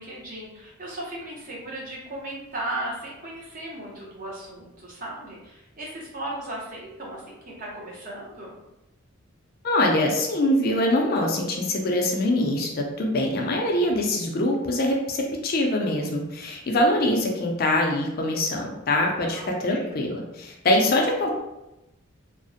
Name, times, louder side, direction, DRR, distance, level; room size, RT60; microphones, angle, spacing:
voice 1, 0.0-8.6 19.2-19.9, right 1 dB, 40° right, -3 dB, 0.6 m, -36 dB
voice 2, 9.6-21.4, left 1 dB, 45° left, 1 dB, 0.4 m, -24 dB
2.4 x 2.0 x 2.6 m, 0.93 s
head